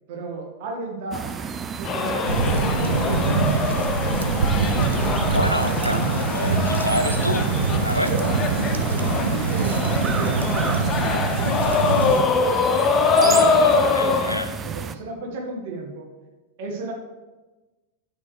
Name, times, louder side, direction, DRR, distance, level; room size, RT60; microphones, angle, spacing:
voice 1, 0.1-1.3 1.7-3.4 7.9-8.4 8.8-10.4 11.1-12.5 13.2-14.4 14.6-16.1 16.6-16.9, right 3 dB, 50° right, 1 dB, 1.7 m, -34 dB
sound 1, 1.1-15.0, right 6 dB, 20° right, 0.4 m, -32 dB
sound 2, 1.8-14.4, left 4 dB, 30° left, 0.7 m, -24 dB
sound 3, 2.3-12.2, right 5 dB, 70° right, 0.6 m, -24 dB
voice 2, 5.3-7.5 7.8-8.1 13.2-14.5, equal, 90° left, 8 dB, 0.6 m, -27 dB
9.4 x 6.9 x 3.3 m, 1.1 s
figure-of-eight pair, 90°, 0 cm